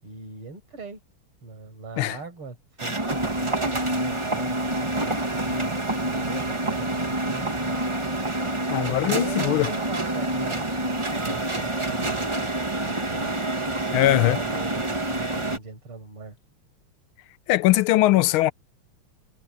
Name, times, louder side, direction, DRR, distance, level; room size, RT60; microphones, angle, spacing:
voice 1, 0.0-1.0 1.4-7.8 8.7-12.5 12.8-13.4 13.8-16.4, right 4 dB, 80° right, 6.3 m, -40 dB
sound 1, 2.8-15.6, right 1 dB, 15° right, 1.4 m, -27 dB
voice 2, 8.7-9.7 13.9-14.4 17.5-18.5, left 16 dB, 75° left, 1.4 m, -20 dB
omnidirectional pair, 2.4 m